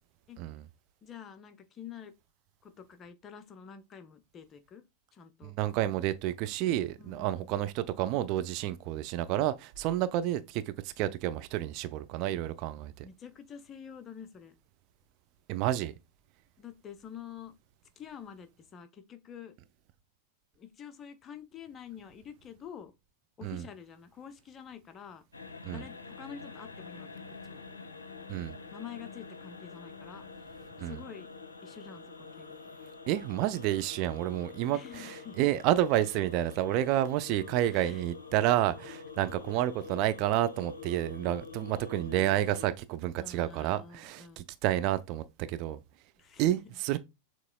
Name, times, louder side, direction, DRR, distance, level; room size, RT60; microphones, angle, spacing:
voice 1, 1.0-2.1 2.6-4.8 5.1-5.5 7.0-7.5 13.0-14.5 16.6-17.5 18.0-19.5 20.6-22.9 23.4-25.2 25.6-27.1 27.4-27.6 28.7-30.3 30.9-31.3 31.6-32.6 34.7-35.5 37.7-38.0 43.2-44.4 46.2-46.6, left 8 dB, 25° left, 0.6 m, -47 dB
voice 2, 5.4-13.1 15.5-15.9 23.4-23.7 25.6-25.8 28.3-28.5 30.8-31.0 33.1-45.8 46.4-47.0, right 13 dB, 40° right, 0.4 m, -30 dB
sound 1, 25.3-42.7, left 4 dB, 75° left, 0.6 m, -46 dB
6.6 x 2.9 x 2.2 m
figure-of-eight pair, 90°, 0 cm